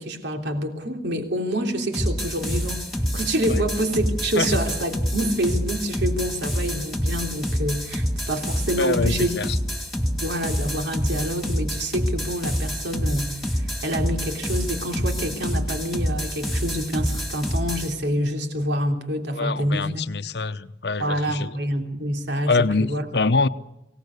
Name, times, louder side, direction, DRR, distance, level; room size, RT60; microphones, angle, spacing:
voice 1, 0.0-2.8 3.1-9.4 10.1-20.1 21.0-23.0, equal, 75° right, 3.4 m, -27 dB
sound 1, 1.9-17.9, equal, ahead, 2.3 m, -27 dB
voice 2, 8.8-9.6 19.3-21.5 22.5-23.5, left 3 dB, 65° left, 0.9 m, -24 dB
24.5 x 18.5 x 8.4 m
head